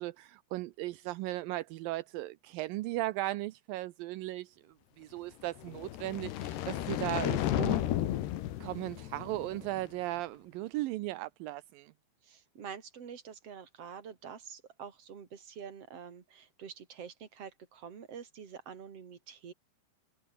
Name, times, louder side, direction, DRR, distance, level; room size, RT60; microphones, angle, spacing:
voice 1, 0.0-4.6 5.0-7.9 8.6-11.9, right 17 dB, 80° right, 2.1 m, -37 dB
sound 1, 5.6-9.8, left 13 dB, 80° left, 3.6 m, -33 dB
voice 2, 12.2-19.5, right 7 dB, 40° right, 3.4 m, -47 dB
omnidirectional pair, 4.8 m